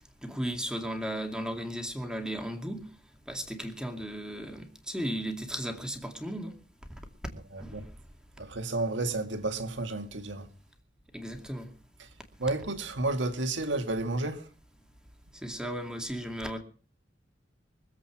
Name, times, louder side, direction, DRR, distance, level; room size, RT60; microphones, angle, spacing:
voice 1, 0.2-2.8 3.3-6.5 7.6-7.8 11.1-11.7 15.4-16.6, equal, 5° right, 2.4 m, -35 dB
voice 2, 7.3-7.9 8.4-10.5 12.0-12.1 12.4-14.5, right 2 dB, 75° right, 2.0 m, -32 dB
24.0 x 8.2 x 6.0 m
head